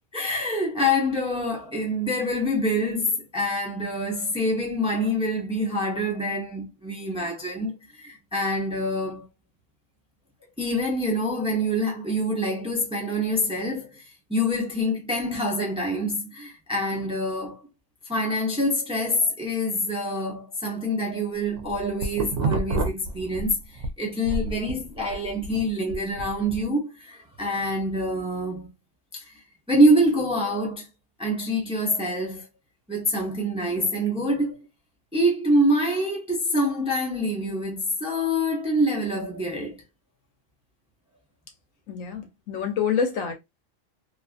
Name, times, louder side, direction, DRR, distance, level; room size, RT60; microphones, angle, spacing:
voice 1, 0.1-9.3 10.6-17.7 18.1-28.7 29.1-29.3 29.7-30.9 31.2-32.5 32.9-34.6 35.1-39.8, equal, 5° right, 0.6 m, -26 dB
sound 1, 21.4-23.9 24.3-26.6, right 3 dB, 75° right, 0.9 m, -29 dB
voice 2, 41.9-43.3, left 6 dB, 80° left, 1.1 m, -27 dB
2.6 x 2.5 x 2.4 m
omnidirectional pair, 1.4 m